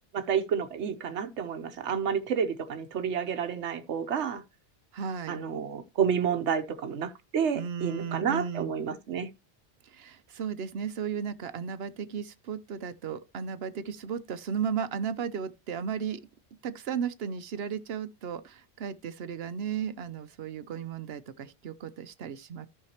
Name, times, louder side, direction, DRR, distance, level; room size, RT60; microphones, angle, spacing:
voice 1, 0.1-4.4 5.3-9.3, right 7 dB, 85° right, 1.2 m, -30 dB
voice 2, 4.9-5.4 7.5-8.7 9.8-16.2 16.6-22.7, right 7 dB, 65° right, 0.9 m, -35 dB
14.0 x 5.7 x 2.9 m
omnidirectional pair, 1.1 m